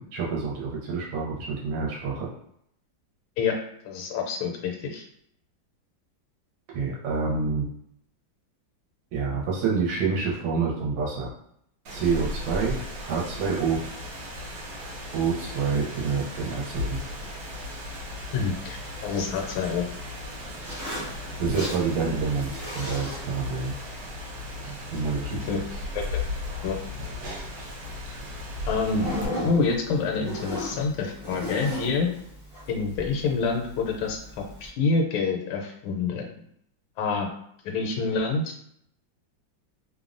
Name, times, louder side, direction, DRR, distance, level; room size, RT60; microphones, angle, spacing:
voice 1, 0.0-2.3 6.7-7.6 9.1-11.3 11.9-13.8 15.1-17.0 21.4-23.7 24.9-25.4, right 5 dB, 85° right, -3 dB, 1.4 m, -27 dB
voice 2, 3.8-5.0 18.3-19.8 25.5-25.6 25.9-26.2 26.6-26.7 28.7-29.1 29.4-32.1 32.7-34.2 34.6-36.2 37.0-37.3 37.6-38.5, left 4 dB, 90° left, 1 dB, 1.4 m, -27 dB
Rain, 11.9-29.3, left 2 dB, 70° right, 1.3 m, -36 dB
Zipper (clothing), 16.8-34.7, equal, 40° right, 0.5 m, -39 dB
3.3 x 2.0 x 2.4 m, 0.71 s
omnidirectional pair, 2.1 m